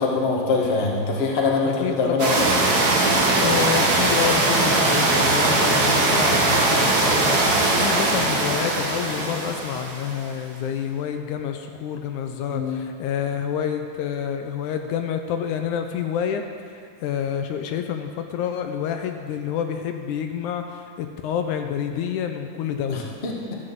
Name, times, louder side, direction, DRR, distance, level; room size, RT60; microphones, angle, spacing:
voice 1, 0.0-2.5 12.5-12.8 22.9-23.6, left 3 dB, 50° left, -2 dB, 0.7 m, -23 dB
voice 2, 1.6-2.4 3.4-23.1, left 8 dB, 75° left, 6 dB, 2.0 m, -28 dB
sound 1, 2.2-10.2, right 2 dB, 40° right, 1.6 m, -20 dB
13.5 x 6.6 x 7.7 m, 2.1 s
omnidirectional pair, 3.8 m